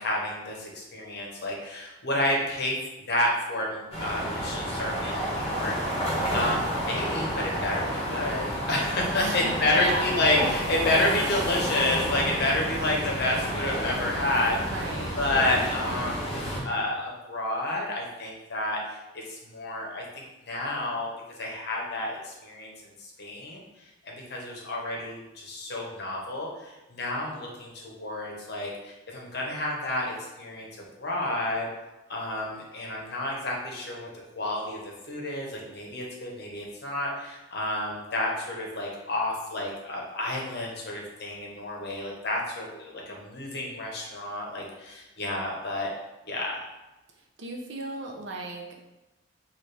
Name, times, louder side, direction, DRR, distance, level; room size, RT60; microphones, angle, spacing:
voice 1, 0.0-5.7 6.3-14.9 15.2-21.1 21.4-23.6 24.0-31.7 32.1-34.1 34.3-34.8 35.1-45.9 46.2-46.6, left 1 dB, 55° left, -2 dB, 0.8 m, -30 dB
sound 1, 3.9-16.6, equal, 30° left, 1.0 m, -30 dB
voice 2, 9.1-10.1 10.9-11.1 14.6-15.1 47.4-48.8, right 2 dB, 65° right, -1 dB, 0.6 m, -35 dB
4.1 x 2.4 x 3.3 m, 1.0 s
head